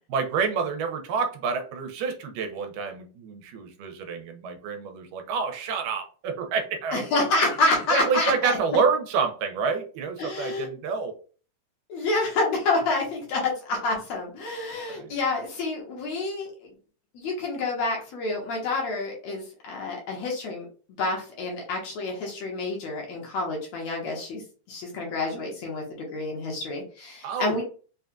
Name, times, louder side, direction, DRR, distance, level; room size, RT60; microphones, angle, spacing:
voice 1, 0.1-7.2 7.9-11.2 14.9-15.2 27.2-27.6, right 5 dB, 90° right, 5 dB, 2.3 m, -28 dB
voice 2, 6.9-8.6 10.2-10.7 11.9-16.5 17.1-20.7 21.0-24.4 24.7-27.6, left 2 dB, 65° left, -1 dB, 1.9 m, -28 dB
5.6 x 2.2 x 2.5 m, 0.38 s
omnidirectional pair, 3.8 m